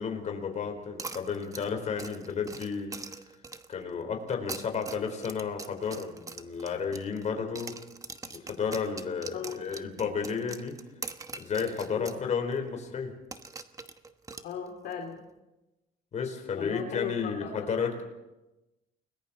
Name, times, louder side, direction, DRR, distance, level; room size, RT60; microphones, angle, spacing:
voice 1, 0.0-2.9 3.7-7.7 8.4-10.8 11.4-13.1 16.1-18.0, left 6 dB, 45° left, 4 dB, 4.3 m, -32 dB
sound 1, 1.0-3.8 4.3-7.3 7.6-12.2 12.5-12.6 13.3-14.9, right 3 dB, 20° right, 1.1 m, -43 dB
voice 2, 14.4-15.2 16.6-17.7, left 7 dB, 70° left, 2 dB, 2.7 m, -37 dB
30.0 x 21.0 x 4.3 m, 1.0 s
cardioid pair, 110°, 17 cm